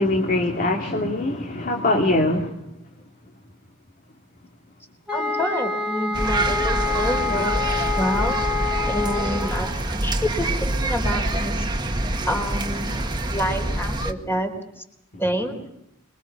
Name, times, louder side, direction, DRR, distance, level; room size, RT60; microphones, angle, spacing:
voice 1, 0.0-2.5, left 2 dB, 40° left, 1 dB, 2.6 m, -22 dB
voice 2, 5.1-8.4 8.9-11.7 12.3-12.9 13.3-14.8 15.2-15.6, equal, 10° left, 5 dB, 3.9 m, -28 dB
sound 1, 5.1-9.8, left 4 dB, 5° right, 3.2 m, -27 dB
sound 2, 6.1-14.1, right 2 dB, 20° right, 1.8 m, -26 dB
26.5 x 23.0 x 5.9 m, 0.79 s
head